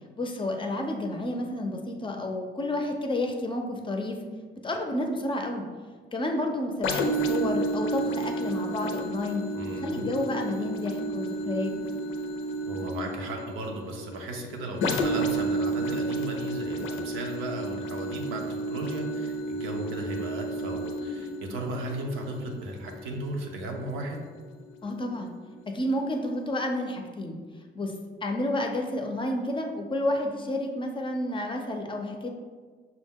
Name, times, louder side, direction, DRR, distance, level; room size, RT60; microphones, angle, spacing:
voice 1, 0.2-4.2 4.6-5.7 6.1-9.5 9.7-11.8 24.8-25.3 25.7-27.4 27.7-27.9 28.2-32.3, left 1 dB, 25° left, 3 dB, 0.5 m, -30 dB
sound 1, 6.8-24.4 24.9-25.0, right 1 dB, 80° left, 0.5 m, -31 dB
voice 2, 9.5-10.2 12.7-24.2, right 2 dB, 85° right, 1 dB, 0.7 m, -36 dB
5.7 x 2.1 x 3.5 m, 1.5 s
cardioid pair, 90°, 20 cm